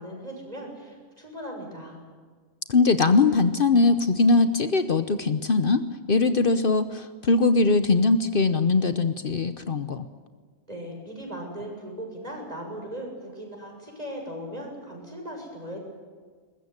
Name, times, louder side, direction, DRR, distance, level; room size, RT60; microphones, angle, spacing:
voice 1, 0.0-2.0 10.7-15.8, equal, 35° right, 1 dB, 7.1 m, -38 dB
voice 2, 2.7-10.1, left 3 dB, 55° left, 10 dB, 1.1 m, -21 dB
22.0 x 21.0 x 9.7 m, 1.5 s
omnidirectional pair, 1.1 m